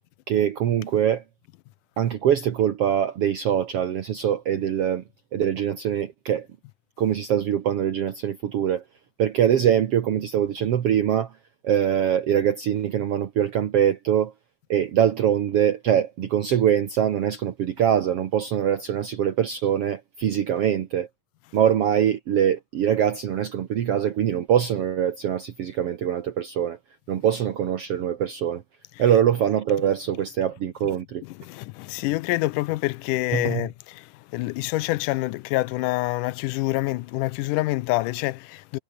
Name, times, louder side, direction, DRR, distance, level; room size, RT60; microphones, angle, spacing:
voice 1, 0.3-1.2 2.0-5.0 5.3-6.5 7.0-8.8 9.2-11.3 11.6-14.3 14.7-21.1 21.5-26.8 27.1-28.6 29.0-31.2 33.3-33.6, right 9 dB, 55° right, 2.0 m, -23 dB
voice 2, 31.2-38.8, left 19 dB, 90° left, 2.2 m, -27 dB
omnidirectional pair, 3.6 m